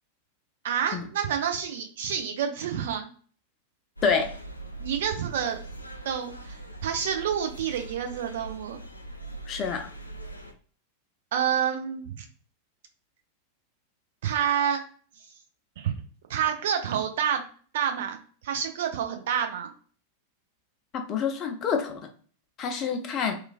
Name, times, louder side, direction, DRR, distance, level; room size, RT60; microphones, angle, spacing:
voice 1, 0.6-3.1 4.8-5.6 6.0-8.8 11.3-12.2 14.2-14.8 15.8-15.9 16.3-17.4 17.7-19.7, right 8 dB, 55° right, 5 dB, 0.4 m, -28 dB
sound 1, 4.0-10.5, right 2 dB, 85° left, 0.3 m, -42 dB
voice 2, 4.0-4.3 9.5-9.9 20.9-22.0 22.6-23.4, left 6 dB, 30° left, 4 dB, 0.5 m, -27 dB
3.0 x 2.3 x 2.3 m, 0.43 s
figure-of-eight pair, 90°, 0 cm